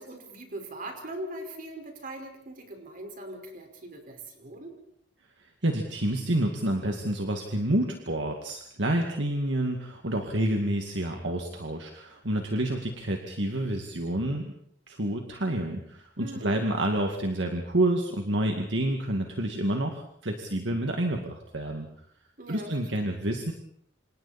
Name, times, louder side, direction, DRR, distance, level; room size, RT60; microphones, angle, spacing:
voice 1, 0.0-4.7 16.2-16.6 22.4-22.7 23.0-23.1, right 1 dB, 50° right, 3 dB, 5.1 m, -40 dB
voice 2, 5.4-14.4 14.9-21.9 22.5-23.5, right 1 dB, 70° right, 3 dB, 2.3 m, -29 dB
28.0 x 27.5 x 4.4 m, 0.66 s
head